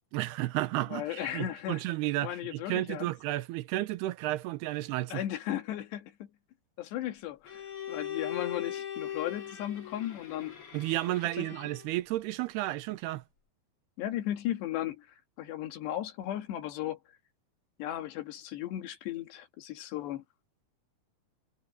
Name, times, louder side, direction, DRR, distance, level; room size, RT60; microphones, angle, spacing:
voice 1, 0.1-5.2 10.7-13.2, right 17 dB, 85° right, 2.8 m, -32 dB
voice 2, 0.9-1.8 2.2-3.1 5.1-6.3 6.8-10.6 11.4-11.5 14.0-15.1 15.4-17.0 17.8-20.2, left 12 dB, 90° left, 3.9 m, -36 dB
Bowed string instrument, 7.5-12.0, left 10 dB, 40° left, 3.0 m, -40 dB
omnidirectional pair, 4.7 m